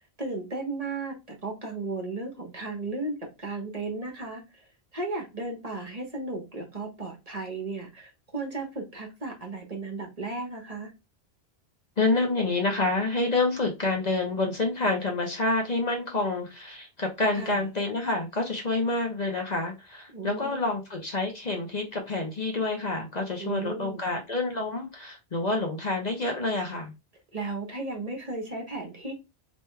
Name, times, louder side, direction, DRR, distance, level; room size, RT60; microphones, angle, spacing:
voice 1, 0.2-4.7 4.9-10.9 17.3-17.7 20.1-20.6 23.4-24.0 27.3-29.1, right 3 dB, 35° right, 1.2 m, -35 dB
voice 2, 12.0-26.9, left 2 dB, 45° left, 0.9 m, -28 dB
4.9 x 3.1 x 2.3 m
omnidirectional pair, 1.1 m